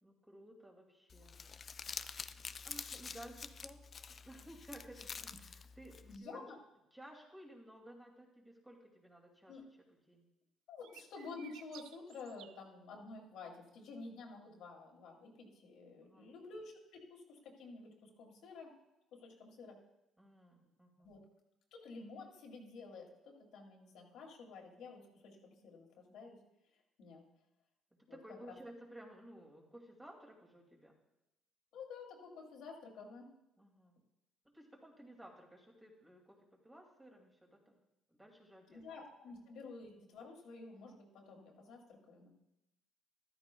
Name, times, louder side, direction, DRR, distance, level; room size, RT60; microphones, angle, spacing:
voice 1, 0.0-1.6 2.6-3.8 4.2-6.5 6.9-9.6 10.1-10.3 16.0-16.3 20.2-21.1 28.1-31.0 33.6-34.0 34.4-36.4 36.6-37.8 38.1-38.8, right 1 dB, 10° right, -1 dB, 2.4 m, -56 dB
Crumpling crinkling, 1.1-6.2, left 5 dB, 35° left, 0.4 m, -47 dB
voice 2, 6.1-6.6 9.5-9.6 10.7-18.7 19.1-19.8 21.0-21.2 21.7-26.4 27.0-27.3 28.1-28.2 28.5-28.6 31.7-33.3 38.7-42.3, left 4 dB, 75° left, -1 dB, 2.6 m, -51 dB
sound 1, 10.8-12.6, right 11 dB, 85° right, 0.4 m, -56 dB
14.0 x 13.0 x 2.3 m, 0.89 s
cardioid pair, 115°, 0 cm